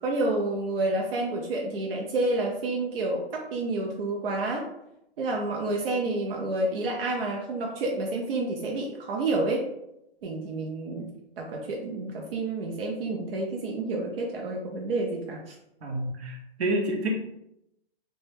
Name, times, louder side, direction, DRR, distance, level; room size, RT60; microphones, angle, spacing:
voice 1, 0.0-4.7 5.2-9.7 10.2-15.6, right 2 dB, 65° right, -1 dB, 0.5 m, -29 dB
voice 2, 15.8-17.1, right 1 dB, 85° right, 0 dB, 0.8 m, -29 dB
2.1 x 2.1 x 3.1 m, 0.84 s
hypercardioid pair, 150°, 31 cm